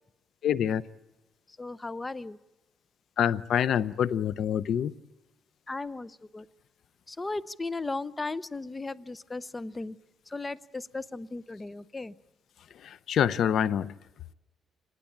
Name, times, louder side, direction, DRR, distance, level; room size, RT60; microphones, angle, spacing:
voice 1, 0.4-0.8 3.2-4.9 12.8-13.9, left 9 dB, 70° left, 0.8 m, -26 dB
voice 2, 1.6-2.4 5.7-6.5 7.1-10.0 10.3-12.1, left 3 dB, 20° left, 0.8 m, -36 dB
26.5 x 19.5 x 8.7 m
cardioid pair, 90°, 0 cm